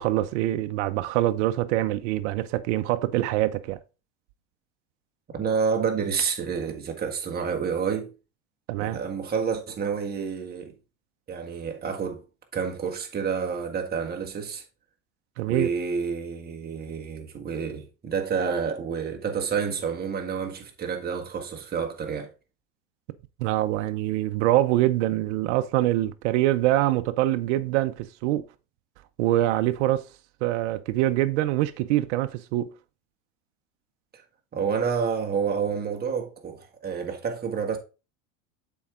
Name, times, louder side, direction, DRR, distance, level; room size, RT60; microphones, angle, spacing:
voice 1, 0.0-3.8 8.7-9.0 15.4-15.7 23.4-28.5 29.2-30.1 30.4-32.7, right 15 dB, 70° right, 0.7 m, -24 dB
voice 2, 5.3-8.1 8.8-10.7 11.3-12.2 12.5-14.6 15.4-22.3 34.5-37.8, right 6 dB, 25° right, 1.6 m, -29 dB
7.1 x 4.7 x 3.7 m
supercardioid pair, 110°, 36 cm